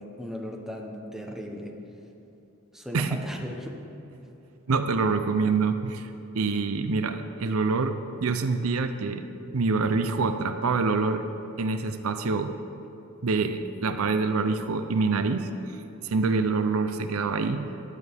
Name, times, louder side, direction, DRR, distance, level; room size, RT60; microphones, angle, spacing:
voice 1, 0.0-1.7 2.7-3.7, equal, ahead, 1 dB, 1.0 m, -37 dB
voice 2, 4.7-6.1 6.3-9.2 9.5-11.2 11.6-12.5 13.2-15.5 16.0-17.7, right 4 dB, 75° right, 9 dB, 0.6 m, -26 dB
14.5 x 11.5 x 3.5 m, 2.9 s
head